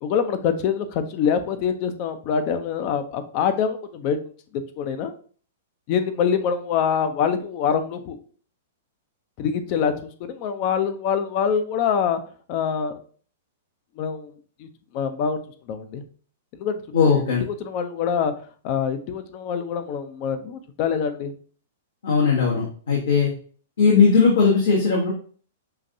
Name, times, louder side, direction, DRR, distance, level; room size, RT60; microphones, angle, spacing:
voice 1, 0.0-4.2 4.8-5.1 5.9-8.2 9.4-12.2 12.5-13.0 14.0-14.7 14.9-15.4 15.7-16.0 16.5-17.3 17.6-18.3 18.6-21.3, left 7 dB, 45° left, 9 dB, 0.6 m, -25 dB
voice 2, 16.9-17.4 22.0-23.3 23.8-25.1, left 5 dB, 80° left, -3 dB, 1.2 m, -18 dB
5.6 x 2.5 x 2.7 m, 0.44 s
hypercardioid pair, 120°, 0 cm